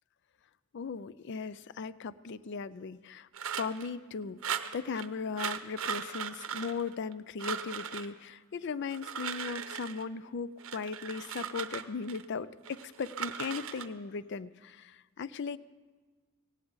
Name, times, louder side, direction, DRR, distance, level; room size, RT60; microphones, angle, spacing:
voice 1, 0.7-3.3 3.6-15.6, left 5 dB, 55° left, 17 dB, 0.4 m, -38 dB
sound 1, 3.3-3.9 4.4-5.1 5.4-7.1 7.4-8.1 8.8-10.0 10.6-12.2 12.6-13.9, right 8 dB, 65° right, 0.7 m, -38 dB
17.5 x 16.0 x 3.9 m, 1.4 s
head